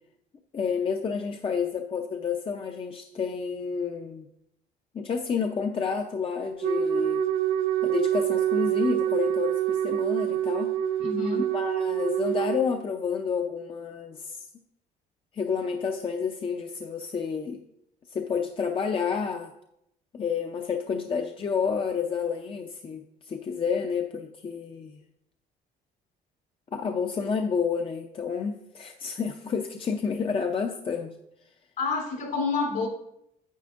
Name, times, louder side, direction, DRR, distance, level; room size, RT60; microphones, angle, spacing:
voice 1, 0.5-4.2 4.9-7.2 7.8-10.7 11.4-14.5 15.3-17.6 18.1-19.5 20.1-24.9 26.7-31.2, left 6 dB, 30° left, 4 dB, 0.6 m, -30 dB
Wind instrument woodwind instrument, 6.6-12.7, right 10 dB, 65° right, 0.6 m, -26 dB
voice 2, 11.0-11.5 31.8-32.9, left 4 dB, 65° left, 0 dB, 3.5 m, -28 dB
9.2 x 9.0 x 2.5 m, 0.78 s
cardioid pair, 110°, 17 cm